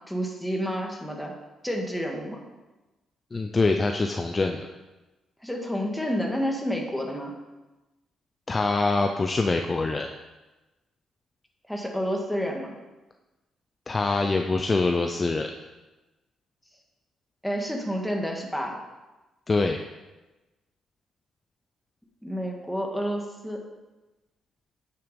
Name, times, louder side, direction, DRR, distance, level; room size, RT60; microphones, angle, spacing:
voice 1, 0.1-1.3 1.6-2.4 5.4-7.3 11.7-12.7 17.4-18.8 22.2-23.6, equal, ahead, 0 dB, 2.0 m, -29 dB
voice 2, 3.3-4.7 8.5-10.1 13.9-15.5 19.5-19.8, left 3 dB, 25° left, 4 dB, 0.6 m, -24 dB
9.4 x 7.0 x 5.3 m, 1.1 s
cardioid pair, 90°, 0 cm